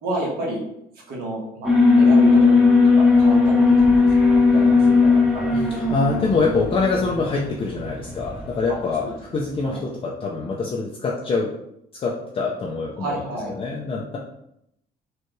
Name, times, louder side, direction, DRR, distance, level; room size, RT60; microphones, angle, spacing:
voice 1, 0.0-0.6 1.1-1.7 2.0-2.7 3.0-5.8 8.7-8.8 9.0-9.8 13.0-13.5, right 1 dB, 65° right, -3 dB, 1.5 m, -31 dB
Alarm, 1.6-8.8, left 4 dB, 5° right, 0.9 m, -17 dB
voice 2, 5.5-11.5 12.0-13.3 13.5-14.2, left 4 dB, 35° left, -3 dB, 0.6 m, -25 dB
4.5 x 2.5 x 3.2 m, 0.77 s
cardioid pair, 110°, 17 cm